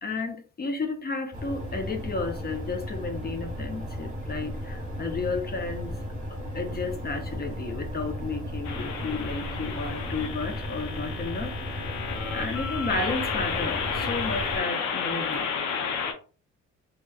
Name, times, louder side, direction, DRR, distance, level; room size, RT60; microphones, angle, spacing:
voice 1, 0.0-11.9 12.3-15.5, left 3 dB, 30° left, 0.6 m, -33 dB
sound 1, 1.3-14.6, equal, 25° right, 1.0 m, -35 dB
sound 2, 8.6-16.1, left 6 dB, 75° left, 0.6 m, -32 dB
2.8 x 2.3 x 2.3 m
cardioid pair, 90°, 30 cm